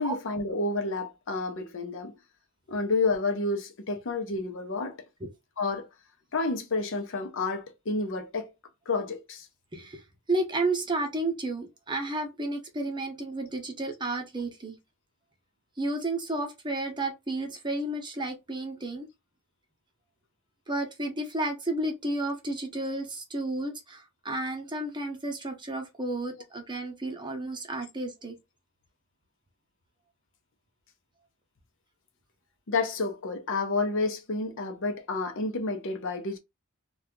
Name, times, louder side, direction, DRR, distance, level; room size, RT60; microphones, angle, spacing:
voice 1, 0.0-2.1 2.7-5.0 5.6-5.9 6.3-8.5 8.9-9.5 32.7-36.4, left 3 dB, 60° left, 0.7 m, -30 dB
voice 2, 9.7-10.0 10.3-14.8 15.8-19.1 20.7-28.4, right 2 dB, 20° right, 0.8 m, -32 dB
2.8 x 2.3 x 3.5 m
head